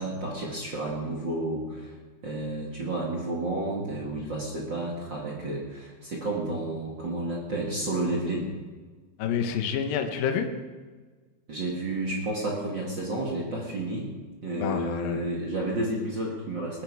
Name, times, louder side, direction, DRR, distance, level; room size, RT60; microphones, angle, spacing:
voice 1, 0.0-1.9 2.2-8.5 11.5-14.1 14.4-16.8, right 2 dB, 75° right, -3 dB, 1.0 m, -31 dB
voice 2, 9.2-10.5 14.5-15.2, left 7 dB, 80° left, 5 dB, 2.0 m, -28 dB
21.0 x 12.0 x 4.8 m, 1.4 s
omnidirectional pair, 5.7 m